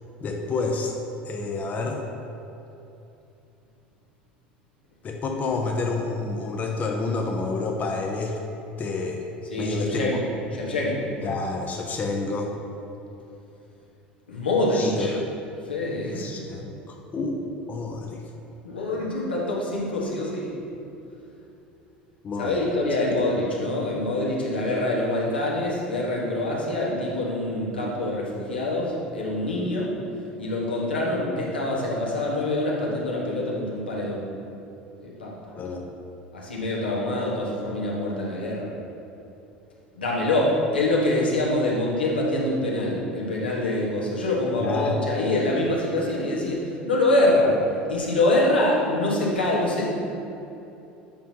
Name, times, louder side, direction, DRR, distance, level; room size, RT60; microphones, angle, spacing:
voice 1, 0.2-0.9 1.2-2.0 5.0-8.4 8.8-9.2 9.6-10.2 11.2-12.5 14.7-15.2 16.2-18.2 22.2-22.6 35.6-35.8 44.6-45.0, left 3 dB, 30° left, 1 dB, 0.7 m, -29 dB
voice 2, 9.4-10.2 10.5-11.0 14.3-15.1 15.7-16.3 18.6-20.6 22.4-29.9 30.4-34.2 35.0-35.5 36.3-38.7 39.9-47.6 47.9-49.9, left 1 dB, 80° left, -5 dB, 1.4 m, -25 dB
8.8 x 5.6 x 2.9 m, 2.8 s
figure-of-eight pair, 70°, 5 cm